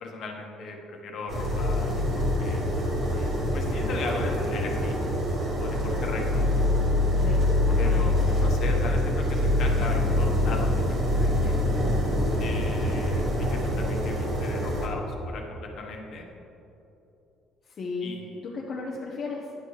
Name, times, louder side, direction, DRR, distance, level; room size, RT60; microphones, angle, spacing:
voice 1, 0.0-2.0 2.4-2.6 3.1-5.0 5.6-6.4 7.8-10.8 11.1-11.6 12.4-16.2 18.0-18.3, left 3 dB, 50° left, 1 dB, 1.2 m, -37 dB
sound 1, 1.3-14.9, left 1 dB, 40° right, 2.0 m, -25 dB
voice 2, 7.1-8.1 17.6-19.5, left 3 dB, 35° left, -3 dB, 0.8 m, -35 dB
10.5 x 7.9 x 3.3 m, 3.0 s
cardioid pair, 150°, 0 cm